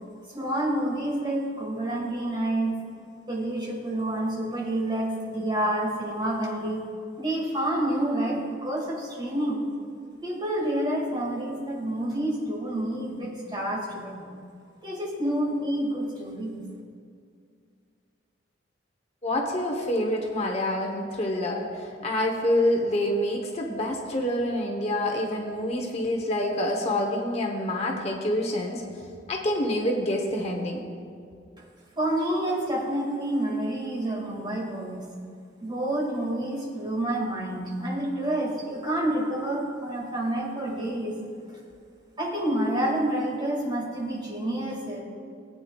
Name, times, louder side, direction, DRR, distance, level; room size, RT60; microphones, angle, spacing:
voice 1, 0.3-2.8 3.3-6.8 7.2-9.6 10.2-14.3 14.8-16.7 32.0-35.0 35.6-41.2 41.5-41.6 42.2-45.0, right 1 dB, 25° right, -2 dB, 2.0 m, -28 dB
voice 2, 19.2-28.8 29.3-30.8, left 1 dB, 35° left, 1 dB, 1.0 m, -27 dB
18.5 x 8.7 x 2.4 m, 2.3 s
head